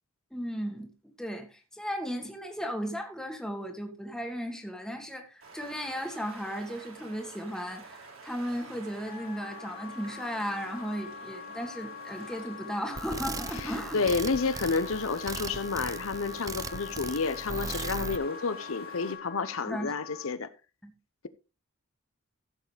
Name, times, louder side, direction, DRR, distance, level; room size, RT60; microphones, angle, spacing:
voice 1, 0.3-0.9 1.2-14.1 19.7-19.9 20.8-20.9, equal, 5° left, 1.8 m, -36 dB
sound 1, 5.4-19.1, right 3 dB, 75° right, 3.8 m, -49 dB
Wind instrument woodwind instrument, 9.0-20.4, left 7 dB, 45° left, 1.4 m, -44 dB
sound 2, 12.9-18.2, right 4 dB, 15° right, 0.5 m, -38 dB
voice 2, 13.6-20.5, left 4 dB, 70° left, 0.8 m, -30 dB
15.5 x 7.5 x 3.4 m
head